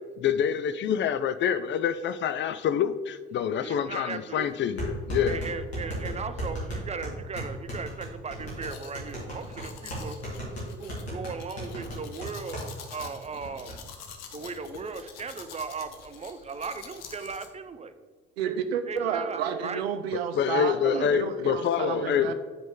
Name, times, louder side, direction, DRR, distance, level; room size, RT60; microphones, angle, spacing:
voice 1, 0.2-5.4 20.3-22.3, left 8 dB, 40° left, 12 dB, 0.5 m, -26 dB
voice 2, 3.6-4.5 5.3-10.2 10.8-13.8 14.3-17.9 18.9-19.8 20.9-21.1 22.0-22.3, right 5 dB, 20° right, 11 dB, 0.6 m, -37 dB
sound 1, 4.8-12.7 13.0-13.1 13.4-13.8, equal, 85° left, 2.2 m, -35 dB
Domestic sounds home sounds, 8.6-17.5, left 6 dB, 60° left, 1.0 m, -46 dB
voice 3, 18.4-22.3, right 7 dB, 80° right, 9 dB, 0.6 m, -30 dB
9.0 x 5.1 x 3.7 m, 1.5 s
figure-of-eight pair, 50°, 31 cm